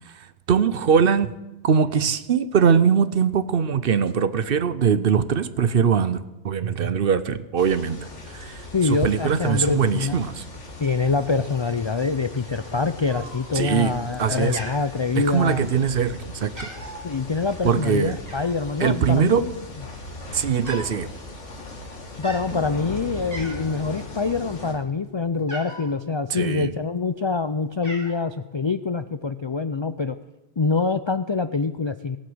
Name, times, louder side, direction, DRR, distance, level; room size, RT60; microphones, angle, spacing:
voice 1, 0.2-1.3 1.6-8.1 8.3-10.4 13.5-14.6 15.3-16.7 17.6-18.2 18.8-19.4 20.3-21.1 26.3-26.7, right 7 dB, 55° right, 14 dB, 0.8 m, -22 dB
sound 1, 7.6-24.7, left 2 dB, 85° left, 2.6 m, -39 dB
voice 2, 8.7-10.2 10.8-15.7 17.0-19.5 22.2-30.2 30.6-32.2, left 4 dB, 50° left, 11 dB, 0.3 m, -25 dB
Cat, 13.1-13.7 14.0-14.3 14.5-15.5 16.0-16.2 16.4-17.1 18.3-18.7 19.5-19.6 19.8-21.0 21.2-21.5 22.1-22.5 22.9-23.0 23.3-23.8 24.2-25.9 26.7-27.3 27.5-28.2, right 1 dB, 15° right, 3.3 m, -39 dB
19.0 x 8.6 x 7.9 m, 0.99 s
omnidirectional pair, 1.2 m